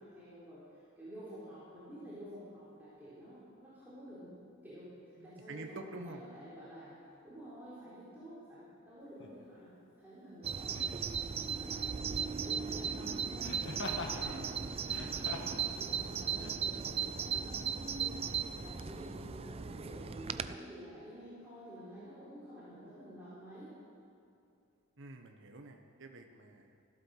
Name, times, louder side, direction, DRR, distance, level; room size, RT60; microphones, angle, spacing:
voice 1, 0.0-4.3 4.6-4.9 5.2-5.9 6.2-7.0 7.2-10.9 11.1-14.4 15.2-23.7, equal, 10° right, -11 dB, 3.9 m, -50 dB
voice 2, 5.2-6.2 14.0-15.2 25.0-26.8, right 2 dB, 60° right, 4 dB, 1.2 m, -49 dB
Laughter, 9.2-9.4 10.7-11.1 13.4-14.2 14.8-15.6 16.4-16.5, left 2 dB, 60° left, 1.7 m, -42 dB
Bird vocalization bird call bird song, 10.4-20.6, right 7 dB, 25° right, 0.4 m, -37 dB
15.0 x 12.5 x 6.6 m, 2.6 s
head